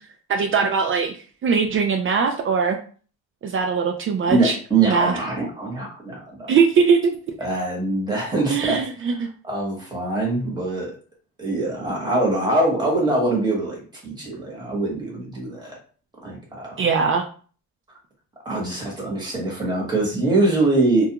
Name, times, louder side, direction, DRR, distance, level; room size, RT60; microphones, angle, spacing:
voice 1, 0.3-1.1 1.4-2.8 3.4-4.6 4.8-5.1 6.5-7.2 8.5-9.3 16.8-17.2, right 5 dB, 45° right, 4 dB, 0.4 m, -20 dB
voice 2, 4.3-6.5 7.4-8.8 9.4-10.9 11.4-13.8 14.0-15.7 16.2-16.9 18.4-21.1, right 2 dB, 15° right, -2 dB, 1.2 m, -23 dB
2.3 x 2.2 x 2.8 m, 0.41 s
cardioid pair, 90°, 30 cm